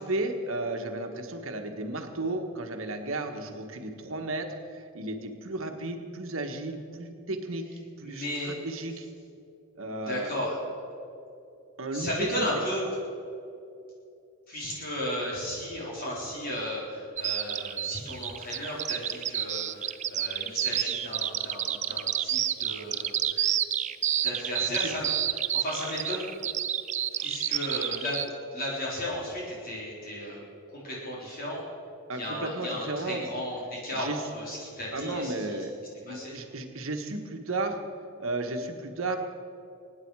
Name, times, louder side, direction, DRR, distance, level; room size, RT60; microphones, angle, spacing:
voice 1, 0.0-4.5 4.7-7.6 8.0-8.3 8.6-9.1 9.8-10.3 11.8-12.5 24.8-24.9 32.1-33.2 33.9-34.2 34.9-35.7 36.0-37.8 38.2-39.2, right 2 dB, 65° right, 5 dB, 1.4 m, -33 dB
voice 2, 8.0-8.5 9.9-10.6 11.9-12.8 14.5-23.5 24.2-25.1 25.3-26.3 27.1-28.2 28.5-30.4 30.7-31.6 32.1-35.6 36.1-36.3, left 1 dB, 40° left, -5 dB, 3.6 m, -35 dB
Bird vocalization bird call bird song, 17.2-28.3, right 11 dB, 30° right, 0.4 m, -29 dB
24.0 x 9.8 x 4.8 m, 2.6 s
head